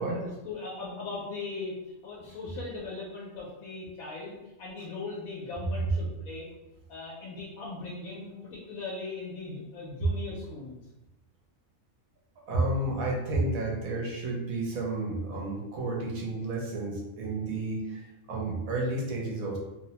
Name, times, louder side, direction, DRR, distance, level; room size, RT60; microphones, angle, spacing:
voice 1, 0.0-1.8 2.0-6.5 6.9-10.8, left 3 dB, 90° left, -4 dB, 1.0 m, -39 dB
voice 2, 12.5-18.0 18.3-19.6, right 2 dB, 85° right, -1 dB, 1.1 m, -31 dB
2.7 x 2.0 x 2.8 m, 0.96 s
omnidirectional pair, 1.4 m